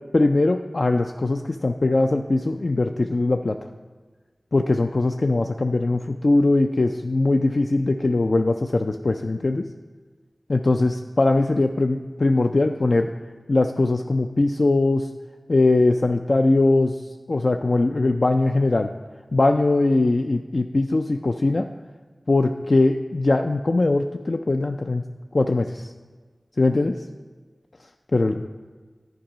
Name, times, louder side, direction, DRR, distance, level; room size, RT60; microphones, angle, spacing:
voice 1, 0.1-3.6 4.5-9.7 10.5-13.1 13.5-15.1 15.5-16.9 17.3-18.9 19.3-21.7 22.3-25.0 25.3-25.9 26.6-27.0 28.1-28.3, left 2 dB, 60° left, 5 dB, 0.3 m, -21 dB
10.5 x 4.5 x 5.0 m, 1.4 s
wide cardioid pair, 65°, 0 cm